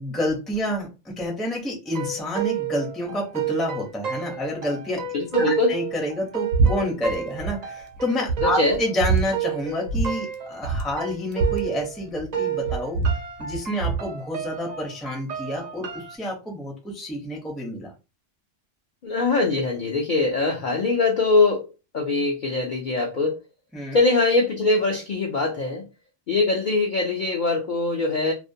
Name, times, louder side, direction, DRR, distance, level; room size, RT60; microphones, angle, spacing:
voice 1, 0.0-5.0 5.4-13.0 13.4-17.9 23.7-24.0, left 1 dB, ahead, 0 dB, 0.4 m, -29 dB
sound 1, 1.9-12.0 12.3-16.2, right 8 dB, 70° right, 0.4 m, -31 dB
voice 2, 5.1-5.7 8.4-8.8 19.0-21.7 21.9-23.4 23.9-25.9 26.3-28.3, left 3 dB, 60° left, 0 dB, 0.5 m, -22 dB
sound 2, 6.5-6.7 7.0-7.6 7.9-8.0 8.3-9.2 9.9-10.1 10.3-10.4 10.6-12.3 12.6-14.1, right 4 dB, 90° right, 0.9 m, -24 dB
2.4 x 2.1 x 2.6 m, 0.28 s
omnidirectional pair, 1.3 m